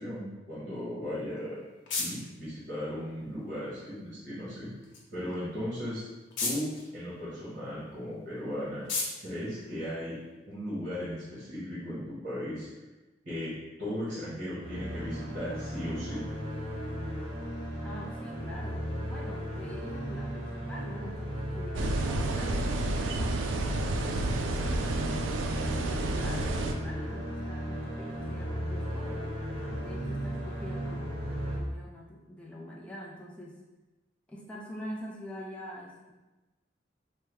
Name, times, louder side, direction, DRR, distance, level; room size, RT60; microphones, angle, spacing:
voice 1, 0.0-1.6 2.0-4.7 5.1-6.0 6.4-8.9 9.2-10.2 10.5-12.7 13.2-16.2, equal, 45° right, -9 dB, 1.2 m, -36 dB
sound 1, 1.1-10.5, left 3 dB, 85° left, 0.7 m, -41 dB
sound 2, 14.6-31.6, equal, 30° right, 0.7 m, -36 dB
voice 2, 17.8-25.4 25.8-29.3 29.8-33.6 34.3-36.1, equal, 5° left, -4 dB, 0.4 m, -45 dB
sound 3, 21.7-26.7, right 2 dB, 90° right, 0.3 m, -30 dB
3.4 x 2.1 x 3.4 m, 1.1 s
head